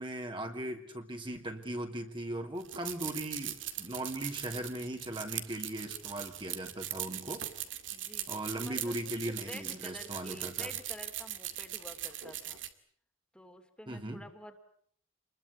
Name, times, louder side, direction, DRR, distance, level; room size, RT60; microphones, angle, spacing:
voice 1, 0.0-7.4 8.3-10.7 13.9-14.2, right 1 dB, 25° right, 4 dB, 2.8 m, -38 dB
sound 1, 2.6-12.7, right 12 dB, 70° right, 2.3 m, -40 dB
voice 2, 7.9-8.9 9.3-12.6 13.3-14.6, equal, 5° left, 5 dB, 2.8 m, -50 dB
27.5 x 21.5 x 8.6 m, 0.62 s
head